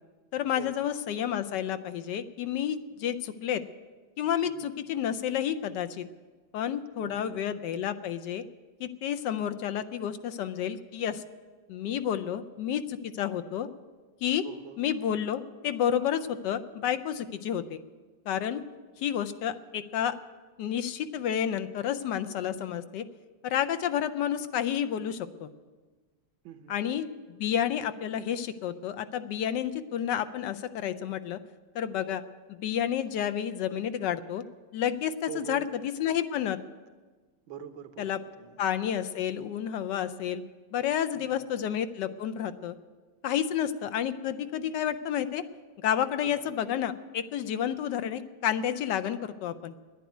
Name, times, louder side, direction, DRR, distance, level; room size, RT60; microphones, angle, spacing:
voice 1, 0.3-3.6 4.2-6.0 6.5-8.4 8.8-11.2 11.7-13.7 14.2-14.4 14.8-17.8 18.3-18.6 19.0-20.1 20.6-23.0 23.4-25.5 26.7-27.1 27.4-31.4 31.7-32.2 32.5-34.4 34.7-36.6 38.0-38.2 38.6-40.4 40.7-42.7 43.2-45.4 45.8-49.7, left 9 dB, 70° left, 11 dB, 1.2 m, -30 dB
voice 2, 7.0-7.3 14.4-14.8 26.4-26.8 35.3-35.7 37.5-38.6 41.1-41.5 46.2-46.5, right 9 dB, 85° right, 8 dB, 1.7 m, -44 dB
10.5 x 10.5 x 9.2 m, 1.4 s
omnidirectional pair, 2.1 m